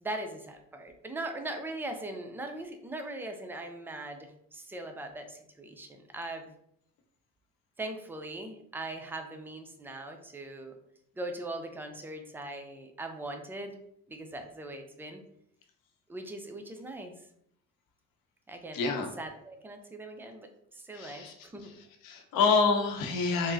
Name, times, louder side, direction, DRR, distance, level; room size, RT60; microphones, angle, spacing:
voice 1, 0.0-6.5 7.8-10.8 11.2-13.8 14.1-15.2 16.1-17.1 18.5-18.9 19.2-21.7, right 2 dB, 5° right, 5 dB, 0.4 m, -40 dB
voice 2, 18.7-19.1 20.9-21.8 22.0-23.5, left 4 dB, 65° left, 3 dB, 0.8 m, -28 dB
3.6 x 2.0 x 2.6 m, 0.71 s
supercardioid pair, 70°, 37 cm